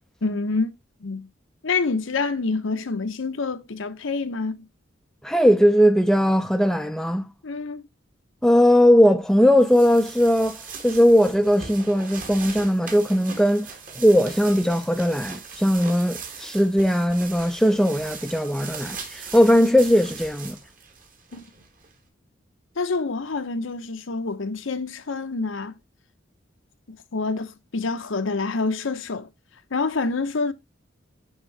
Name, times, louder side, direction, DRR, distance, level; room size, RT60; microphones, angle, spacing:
voice 1, 0.2-0.7 1.0-1.3 1.6-4.7 7.4-7.8 21.3-21.4 22.8-25.7 26.9-29.3 29.7-30.5, left 3 dB, 80° left, 0.7 m, -27 dB
voice 2, 5.2-7.2 8.4-10.6 10.8-13.7 14.0-20.6, equal, ahead, 0.4 m, -19 dB
sound 1, 9.4-21.9, right 5 dB, 45° right, 1.8 m, -40 dB
10.5 x 3.7 x 3.1 m
head